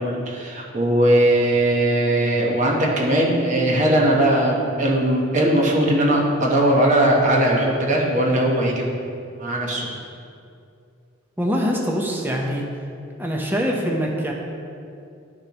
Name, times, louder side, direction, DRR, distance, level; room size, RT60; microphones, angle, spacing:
voice 1, 0.0-8.9 9.4-9.9, right 1 dB, 35° right, -2 dB, 1.1 m, -19 dB
voice 2, 11.4-12.6 13.2-14.3, equal, 10° right, -1 dB, 0.9 m, -23 dB
11.5 x 6.6 x 3.0 m, 2.5 s
head